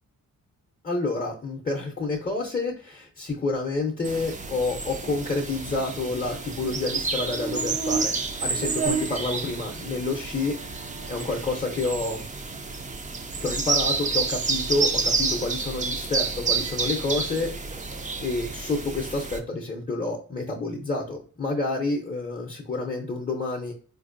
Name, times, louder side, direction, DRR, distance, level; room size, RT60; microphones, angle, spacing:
voice 1, 0.8-8.1 8.4-10.6 11.1-12.3 13.4-17.5 18.2-23.7, left 3 dB, 25° left, -2 dB, 0.6 m, -29 dB
sound 1, 4.0-19.4, right 4 dB, 25° right, 0.4 m, -29 dB
4.3 x 2.6 x 2.5 m, 0.41 s
wide cardioid pair, 110°, 35 cm